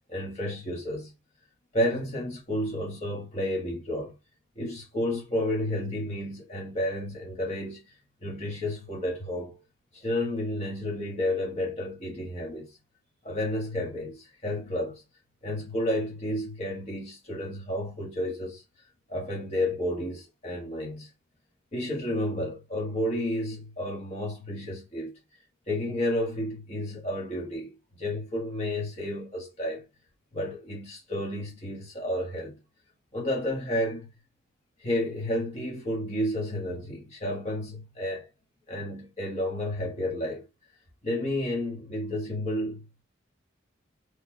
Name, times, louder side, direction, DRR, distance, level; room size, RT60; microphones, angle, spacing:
voice 1, 0.1-1.1 1.7-4.1 4.5-7.8 8.2-9.6 9.9-12.8 13.2-15.0 15.4-18.6 19.1-21.1 21.7-25.1 25.7-29.8 30.3-32.6 33.1-34.1 34.8-38.3 38.7-40.4 41.0-43.0, left 1 dB, 35° left, 1.6 m, -31 dB
3.9 x 3.3 x 2.4 m
head